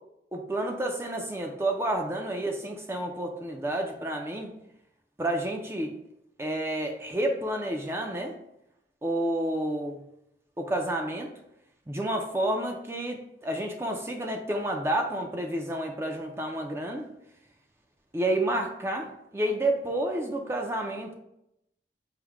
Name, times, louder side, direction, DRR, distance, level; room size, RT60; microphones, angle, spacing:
voice 1, 0.3-4.5 5.2-5.9 6.4-8.3 9.0-10.0 10.6-11.3 11.9-17.1 18.1-21.1, right 1 dB, 15° right, 3 dB, 0.4 m, -30 dB
4.9 x 2.1 x 4.6 m, 0.82 s
head